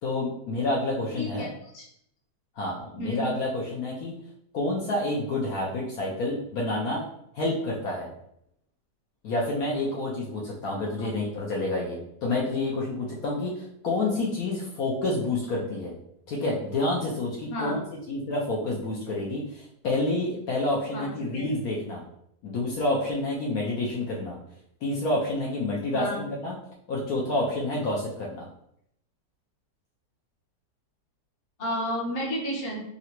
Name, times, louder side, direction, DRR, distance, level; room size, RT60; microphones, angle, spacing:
voice 1, 0.0-1.5 2.6-4.2 4.5-7.0 7.3-8.1 9.2-16.0 16.3-22.0 22.4-24.4 24.8-26.5 26.9-28.4, left 2 dB, 70° left, -3 dB, 1.0 m, -28 dB
voice 2, 1.1-1.9 3.0-3.3 11.0-11.1 17.5-17.8 20.9-21.4 25.9-26.2 31.6-32.8, equal, 45° left, -3 dB, 0.9 m, -32 dB
3.7 x 2.1 x 2.9 m, 0.73 s
omnidirectional pair, 1.8 m